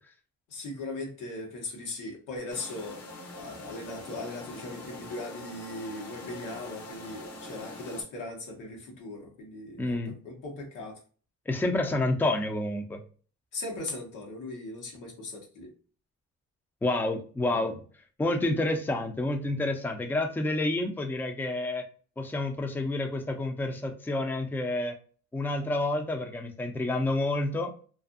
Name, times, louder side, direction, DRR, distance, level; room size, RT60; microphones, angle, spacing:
voice 1, 0.5-3.0 3.4-11.0 13.5-15.7, left 2 dB, 90° left, -1 dB, 1.1 m, -39 dB
sound 1, 2.5-8.0, left 2 dB, 60° left, 0.9 m, -43 dB
voice 2, 9.8-10.2 11.5-13.0 16.8-17.8 18.2-21.8 22.2-24.9 25.3-27.7, left 2 dB, 5° left, 4 dB, 0.4 m, -29 dB
2.5 x 2.5 x 2.4 m, 0.40 s
cardioid pair, 90°, 30 cm